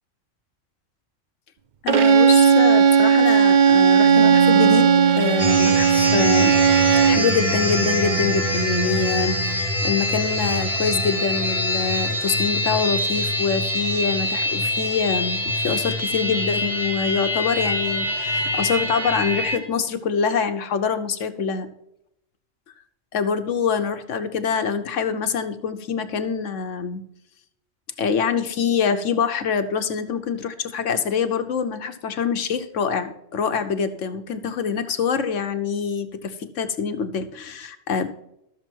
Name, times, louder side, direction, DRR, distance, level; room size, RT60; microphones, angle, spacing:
voice 1, 1.8-6.6 7.0-21.7 23.1-27.0 28.0-38.1, left 6 dB, 70° left, 9 dB, 1.3 m, -25 dB
Bowed string instrument, 1.9-7.3, right 7 dB, 50° right, 0.5 m, -16 dB
Wind instrument woodwind instrument, 3.9-9.6, right 8 dB, 85° right, 4.7 m, -28 dB
sound 1, 5.4-19.6, left 1 dB, 25° right, 3.6 m, -25 dB
13.0 x 6.9 x 4.5 m, 0.82 s
omnidirectional pair, 1.3 m